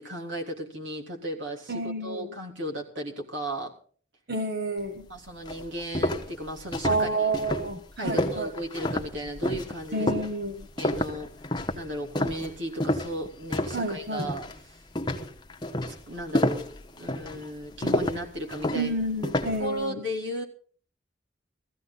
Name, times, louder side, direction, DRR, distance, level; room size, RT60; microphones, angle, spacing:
voice 1, 0.0-3.7 5.1-7.3 8.0-10.1 10.8-11.3 11.7-14.5 15.8-18.9 19.6-20.4, equal, 75° right, 1 dB, 3.3 m, -35 dB
voice 2, 1.7-2.3 4.3-5.1 6.8-8.5 9.9-10.7 13.7-14.3 18.7-20.0, right 2 dB, 55° right, 5 dB, 1.5 m, -29 dB
sound 1, 5.0-5.1 5.5-13.9 14.2-14.6 15.0-19.7, left 1 dB, 25° left, 1.1 m, -29 dB
15.5 x 14.5 x 4.0 m, 0.43 s
head